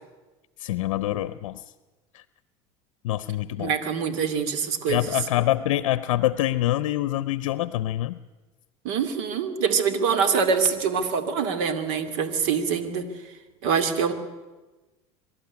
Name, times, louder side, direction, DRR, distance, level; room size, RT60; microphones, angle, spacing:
voice 1, 0.6-1.6 2.1-2.2 3.0-3.7 4.9-8.2, left 14 dB, 80° left, 16 dB, 0.6 m, -25 dB
voice 2, 3.6-5.2 8.8-13.1 13.6-14.1, right 6 dB, 70° right, 8 dB, 2.5 m, -24 dB
25.0 x 12.5 x 9.7 m, 1.2 s
hypercardioid pair, 85°, 16 cm